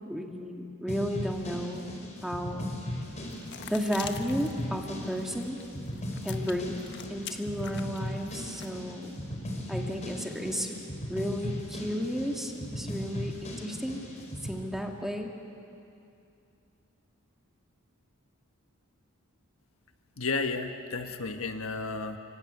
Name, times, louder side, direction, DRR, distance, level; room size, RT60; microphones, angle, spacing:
voice 1, 0.1-1.9 2.2-2.7 3.7-5.6 6.2-6.8 7.1-9.2 9.7-10.8 11.1-14.0 14.4-15.3, equal, ahead, 2 dB, 2.1 m, -33 dB
sound 1, 0.9-14.6, left 1 dB, 35° left, 5.0 m, -37 dB
sound 2, 3.2-8.8, left 8 dB, 55° left, 1.3 m, -46 dB
voice 2, 20.2-22.2, left 4 dB, 70° left, 6 dB, 1.5 m, -32 dB
24.5 x 24.5 x 9.6 m, 2.6 s
head